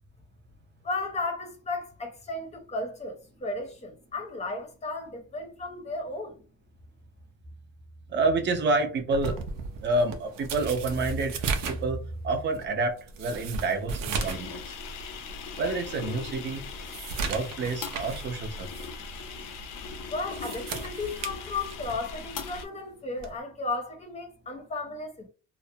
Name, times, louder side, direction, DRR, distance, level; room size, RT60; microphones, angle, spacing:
voice 1, 0.8-6.4 20.1-25.3, left 3 dB, 20° left, 0.6 m, -34 dB
voice 2, 8.1-9.4 9.8-14.8 15.6-16.6 17.2-18.9, right 3 dB, 35° right, 0.5 m, -28 dB
sound 1, 9.1-14.5 14.9-15.0 15.5-15.6 16.1-18.3 18.7-18.9 20.1-22.1 23.2-23.4, right 5 dB, 90° right, 0.6 m, -36 dB
sound 2, 14.1-22.6, left 4 dB, 80° left, 0.6 m, -39 dB
2.4 x 2.1 x 2.6 m
cardioid pair, 165°, 32 cm